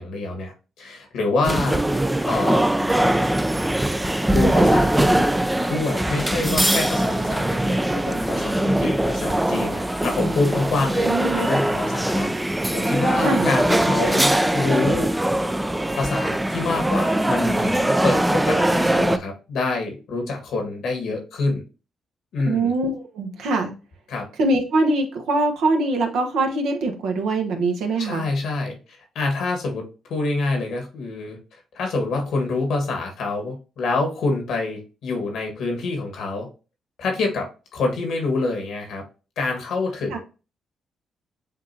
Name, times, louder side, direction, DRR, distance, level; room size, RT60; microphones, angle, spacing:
voice 1, 0.0-2.6 4.3-5.3 5.7-15.1 15.9-21.6 22.3-22.7 24.1-24.3 28.0-31.4 31.7-36.5 37.0-39.0 39.4-40.2, left 3 dB, 75° left, 3 dB, 1.5 m, -26 dB
sound 1, 1.4-19.2, right 1 dB, 10° right, 0.4 m, -21 dB
voice 2, 11.1-11.4 13.2-13.5 22.4-23.7 24.4-28.2 40.1-40.2, right 2 dB, 80° right, 4 dB, 1.0 m, -23 dB
7.3 x 2.6 x 2.7 m, 0.32 s
supercardioid pair, 55°, 0 cm